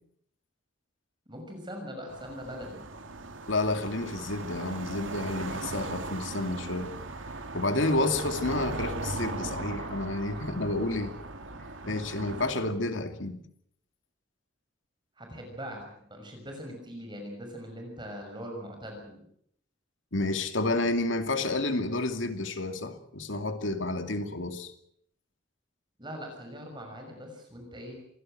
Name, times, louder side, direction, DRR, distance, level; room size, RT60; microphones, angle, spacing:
voice 1, 1.3-2.8 11.9-12.6 15.2-19.2 26.0-28.0, equal, 25° right, 6.2 m, -42 dB
sound 1, 2.1-12.5, right 2 dB, 90° right, 2.2 m, -38 dB
voice 2, 3.5-6.9 7.5-11.1 11.9-13.4 20.1-24.7, left 2 dB, 80° left, 2.5 m, -30 dB
27.0 x 17.0 x 7.7 m
head